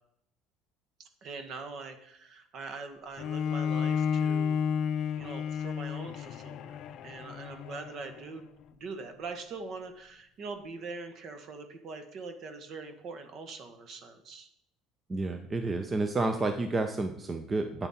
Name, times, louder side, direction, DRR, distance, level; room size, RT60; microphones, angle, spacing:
voice 1, 1.0-4.6 5.2-6.8 7.0-14.5, right 4 dB, 50° right, 7 dB, 1.6 m, -43 dB
Bowed string instrument, 3.2-8.4, left 7 dB, 55° left, 0.6 m, -32 dB
voice 2, 15.1-17.9, right 3 dB, 20° right, 7 dB, 0.8 m, -30 dB
11.0 x 8.3 x 4.4 m, 0.75 s
cardioid pair, 125°, 0 cm